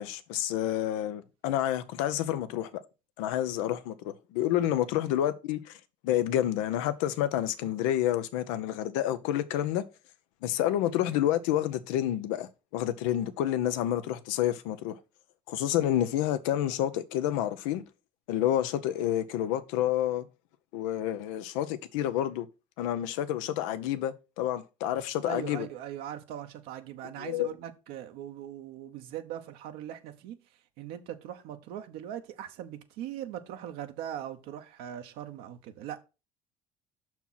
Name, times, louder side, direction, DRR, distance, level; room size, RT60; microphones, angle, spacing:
voice 1, 0.0-2.7 3.2-5.8 6.0-9.8 10.4-15.0 15.5-17.8 18.3-20.3 20.7-22.5 22.8-25.7 27.0-27.5, left 12 dB, 85° left, 0.8 m, -29 dB
voice 2, 25.2-30.4 30.8-36.0, right 11 dB, 75° right, 1.0 m, -40 dB
6.0 x 4.5 x 5.6 m
supercardioid pair, 80°, 16 cm